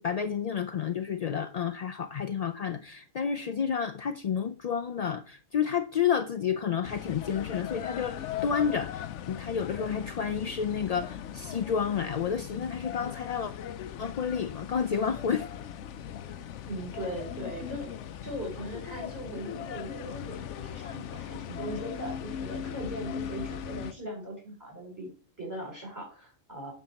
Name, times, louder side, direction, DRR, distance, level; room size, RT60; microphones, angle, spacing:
voice 1, 0.0-13.5 14.0-15.5, left 7 dB, 60° left, 0.4 m, -30 dB
sound 1, 6.8-23.9, left 9 dB, 85° left, 0.9 m, -39 dB
voice 2, 16.7-17.9 18.2-25.1 25.4-26.7, right 1 dB, 15° right, 4.5 m, -39 dB
9.9 x 4.6 x 5.7 m
omnidirectional pair, 1.2 m